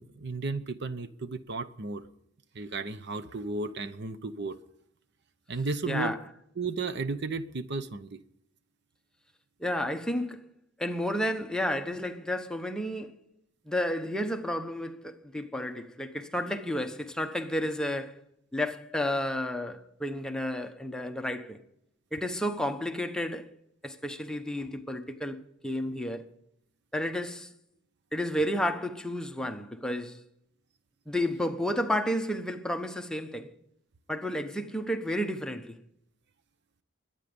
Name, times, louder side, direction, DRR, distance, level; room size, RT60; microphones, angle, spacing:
voice 1, 0.0-2.0 2.5-4.6 5.5-6.1 6.6-8.2, right 3 dB, 60° right, 0.8 m, -34 dB
voice 2, 5.8-6.2 9.6-10.5 10.8-13.1 13.7-18.2 18.5-21.6 22.1-23.5 23.8-26.2 26.9-27.5 28.1-30.2 31.1-33.5 34.1-35.8, left 1 dB, 5° left, 1.0 m, -31 dB
22.0 x 9.1 x 5.3 m
head